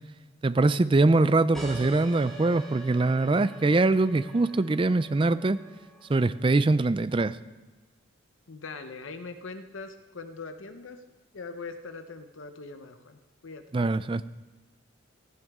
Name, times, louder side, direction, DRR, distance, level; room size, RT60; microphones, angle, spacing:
voice 1, 0.4-5.6 6.1-7.4 13.7-14.2, right 2 dB, 25° right, 14 dB, 0.3 m, -23 dB
sound 1, 1.5-6.7, right 1 dB, ahead, 2.8 m, -45 dB
voice 2, 8.5-11.0 11.3-13.6, left 4 dB, 75° left, 8 dB, 0.9 m, -41 dB
15.0 x 15.0 x 3.6 m, 1.2 s
head